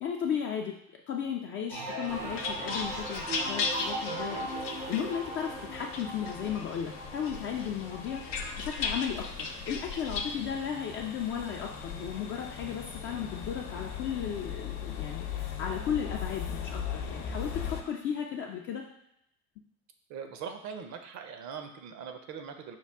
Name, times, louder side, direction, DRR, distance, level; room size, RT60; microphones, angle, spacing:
voice 1, 0.0-0.8 1.1-8.2 8.6-18.8, left 8 dB, 30° left, 1 dB, 0.3 m, -35 dB
sound 1, 1.7-11.3 11.6-12.2, right 1 dB, 85° right, 1.2 m, -40 dB
sound 2, 1.9-5.5 5.9-6.8 7.2-10.3, left 4 dB, 90° left, 0.6 m, -36 dB
sound 3, 2.1-17.8, left 7 dB, 50° left, 0.8 m, -40 dB
voice 2, 20.1-22.8, right 6 dB, 40° right, 6 dB, 0.6 m, -41 dB
5.9 x 2.3 x 3.3 m, 0.77 s
figure-of-eight pair, 70°, 47 cm